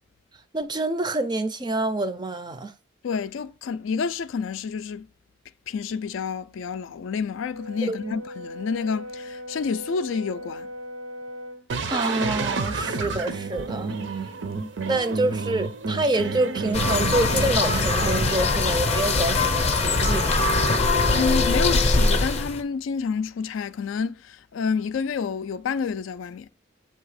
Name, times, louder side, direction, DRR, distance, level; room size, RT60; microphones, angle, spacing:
voice 1, 0.5-2.7 7.9-8.1 11.9-14.0 14.9-20.6, right 2 dB, 20° right, 0.4 m, -27 dB
voice 2, 3.0-5.1 5.7-10.7 21.1-26.5, left 5 dB, 75° left, 0.3 m, -29 dB
Brass instrument, 7.4-11.7, left 1 dB, 80° right, 1.0 m, -38 dB
sound 1, 11.7-18.2, right 4 dB, 65° right, 0.6 m, -30 dB
sound 2, 16.7-22.6, left 3 dB, 30° left, 0.6 m, -22 dB
7.8 x 2.8 x 4.8 m
head